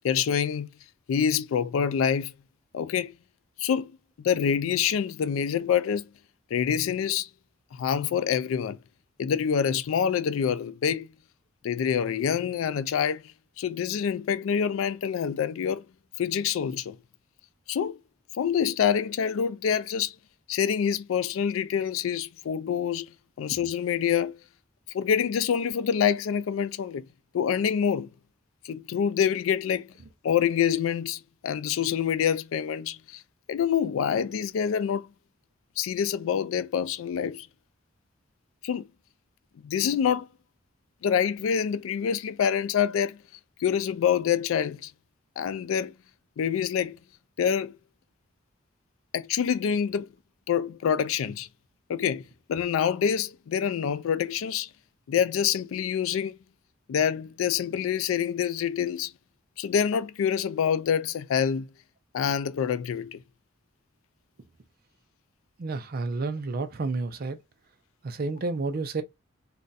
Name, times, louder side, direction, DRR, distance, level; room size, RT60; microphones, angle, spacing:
voice 1, 0.0-0.7 1.1-2.3 2.7-3.1 3.6-3.9 4.2-6.1 6.5-7.3 7.7-8.8 9.2-11.1 11.6-15.8 16.2-17.0 17.7-18.0 18.3-20.1 20.5-23.1 23.4-24.4 24.9-27.1 27.3-28.1 28.6-29.9 30.2-33.2 33.5-35.1 35.8-37.5 38.6-38.9 39.6-40.3 41.0-43.2 43.6-44.9 45.4-45.9 46.4-47.0 47.4-47.7 49.1-50.1 50.5-51.5 51.9-52.2 52.5-54.7 55.1-56.4 56.9-59.1 59.6-61.7 62.1-63.2, left 8 dB, 85° left, 0.3 m, -26 dB
voice 2, 65.6-67.4 68.0-69.0, right 3 dB, 50° right, 0.5 m, -30 dB
2.5 x 2.2 x 3.9 m
head